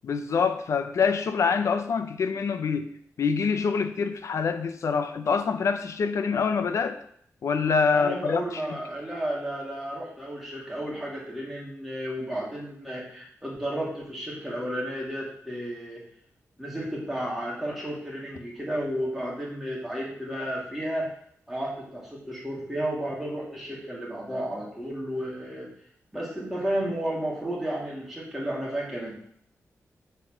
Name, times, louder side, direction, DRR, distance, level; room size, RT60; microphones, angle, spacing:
voice 1, 0.0-7.0 7.4-8.8, left 5 dB, 65° left, 9 dB, 0.7 m, -26 dB
voice 2, 7.9-16.0 16.6-21.1 21.5-25.7 26.1-29.1, right 1 dB, 5° right, -5 dB, 2.8 m, -32 dB
7.9 x 4.6 x 6.2 m, 0.65 s
wide cardioid pair, 155°, 5 cm